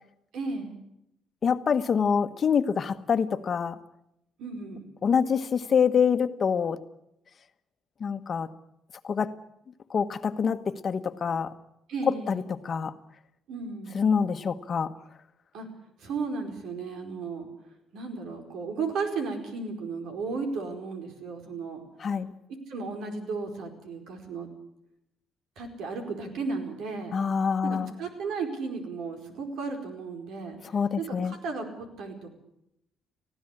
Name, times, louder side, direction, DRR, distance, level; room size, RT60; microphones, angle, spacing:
voice 1, 0.3-0.8 4.4-4.9 11.9-12.4 13.5-13.9 15.5-15.7 16.0-17.5 17.9-21.8 22.7-24.5 25.6-27.1 27.6-30.6 31.0-32.3, right 4 dB, 80° right, 4 dB, 4.8 m, -34 dB
voice 2, 1.4-3.8 5.0-6.8 8.0-8.5 9.0-9.3 9.9-11.5 12.1-12.9 13.9-14.9 22.0-22.3 27.1-27.9 30.7-31.3, left 6 dB, 45° left, 10 dB, 1.2 m, -26 dB
19.5 x 15.5 x 9.9 m, 0.81 s
cardioid pair, 90°, 0 cm